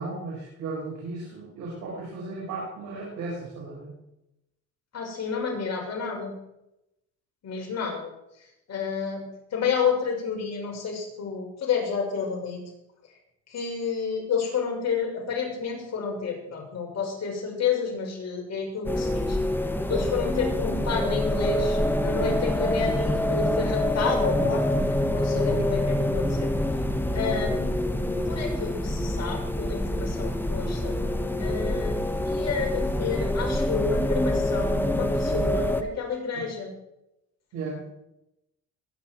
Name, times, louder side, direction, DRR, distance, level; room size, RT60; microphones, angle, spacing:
voice 1, 0.0-3.9 25.5-25.7 36.3-36.4 37.5-37.9, right 3 dB, 90° right, -6 dB, 6.5 m, -35 dB
voice 2, 4.9-6.4 7.4-8.1 8.7-12.6 13.5-19.4 19.9-26.5 27.1-27.7 28.1-31.0 31.4-32.0 32.2-36.7, left 6 dB, 60° left, -1 dB, 6.3 m, -30 dB
sound 1, 18.9-35.8, left 1 dB, 5° left, 1.4 m, -26 dB
22.0 x 10.5 x 4.6 m, 0.87 s
cardioid pair, 90°, 30 cm